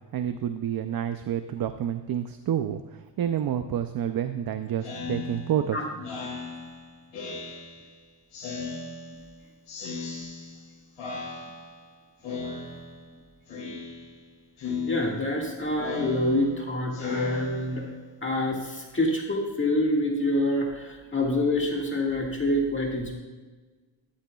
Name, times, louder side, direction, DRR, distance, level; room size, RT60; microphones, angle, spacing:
voice 1, 0.1-5.8, right 10 dB, 50° right, 9 dB, 0.5 m, -29 dB
Speech synthesizer, 4.8-8.0 8.3-9.3 9.7-10.7 11.0-11.9 12.2-13.1 13.5-14.3 14.6-18.1, left 4 dB, 85° left, 3.1 m, -36 dB
voice 2, 14.9-17.8 18.2-23.2, left 1 dB, 25° left, -2 dB, 1.8 m, -26 dB
13.5 x 12.5 x 2.3 m, 1.3 s
cardioid pair, 125°, 49 cm